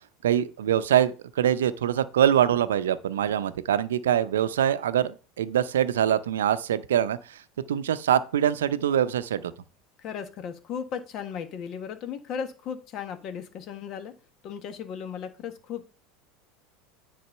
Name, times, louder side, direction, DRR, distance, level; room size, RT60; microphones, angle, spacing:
voice 1, 0.2-7.4 7.7-9.5, right 10 dB, 80° right, 0.6 m, -24 dB
voice 2, 10.0-14.1 14.4-15.8, left 7 dB, 50° left, 1.4 m, -36 dB
9.3 x 4.1 x 5.5 m
hypercardioid pair, 80°, 0 cm